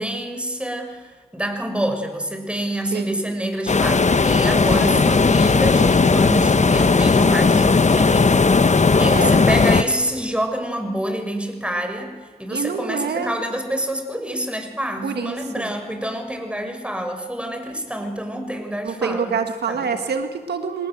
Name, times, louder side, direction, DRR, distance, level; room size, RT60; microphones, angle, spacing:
voice 1, 0.0-19.3 19.7-19.9, right 1 dB, 5° right, 6 dB, 6.5 m, -27 dB
voice 2, 2.9-3.3 4.8-5.1 9.0-9.3 12.5-13.3 15.0-15.7 18.8-20.9, right 6 dB, 80° right, 7 dB, 1.6 m, -26 dB
sound 1, 3.7-9.8, left 4 dB, 45° left, 1.3 m, -16 dB
26.0 x 20.0 x 7.9 m, 1.4 s
supercardioid pair, 40°, 17 cm